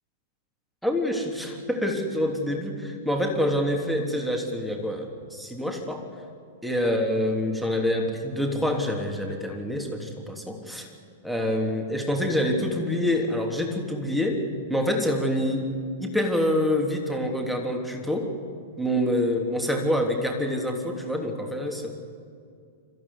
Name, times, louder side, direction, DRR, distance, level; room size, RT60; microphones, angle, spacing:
voice 1, 0.8-6.0 6.6-10.9 11.2-15.7 16.0-18.3 18.8-21.9, left 1 dB, ahead, 2 dB, 3.2 m, -26 dB
25.5 x 15.0 x 9.9 m, 2.3 s
figure-of-eight pair, 100°, 0 cm